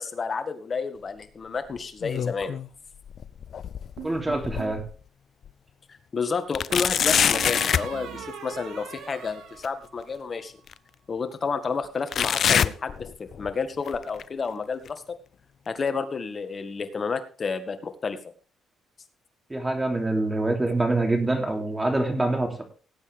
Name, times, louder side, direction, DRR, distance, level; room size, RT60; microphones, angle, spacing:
voice 1, 0.0-2.6 6.1-10.5 11.1-15.2 15.7-18.2, left 5 dB, 40° left, 9 dB, 1.8 m, -30 dB
sound 1, 1.8-2.7 3.1-5.0 5.5-5.6 6.5-7.9 9.6-9.7 10.7-10.8 12.1-13.5 13.9-14.2 14.9-15.0 15.9-16.0, left 8 dB, 60° left, 0.5 m, -25 dB
voice 2, 4.0-4.8 19.5-22.6, right 2 dB, 15° right, 4 dB, 3.1 m, -25 dB
sound 2, 4.0-4.8 6.7-10.3, right 7 dB, 85° right, 2.9 m, -40 dB
18.0 x 8.4 x 3.5 m, 0.38 s
cardioid pair, 90°, 0 cm